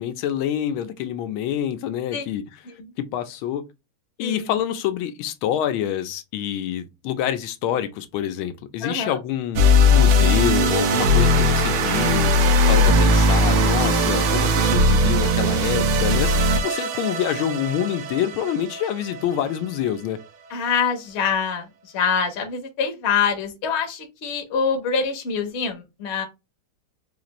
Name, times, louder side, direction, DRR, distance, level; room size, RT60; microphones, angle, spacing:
voice 1, 0.0-2.6 3.0-3.7 4.2-9.6 9.9-12.3 12.7-20.2, left 10 dB, 85° left, 1.4 m, -26 dB
voice 2, 4.2-4.5 8.8-9.2 20.5-21.7 21.9-26.2, left 6 dB, 50° left, 0.8 m, -25 dB
sound 1, 9.6-19.9, left 1 dB, 85° right, 1.6 m, -19 dB
sound 2, 10.4-15.5, right 8 dB, 70° right, 0.9 m, -30 dB
4.2 x 2.5 x 2.9 m
omnidirectional pair, 2.2 m